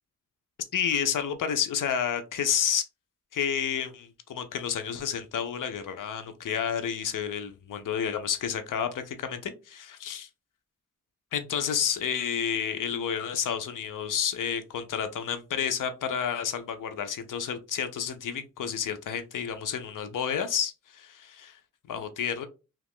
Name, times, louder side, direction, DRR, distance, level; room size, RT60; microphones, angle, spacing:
voice 1, 0.7-2.8 3.3-10.3 11.3-21.4 21.9-22.5, left 8 dB, 85° left, 0.5 m, -30 dB
2.9 x 2.4 x 3.5 m
cardioid pair, 70°, 31 cm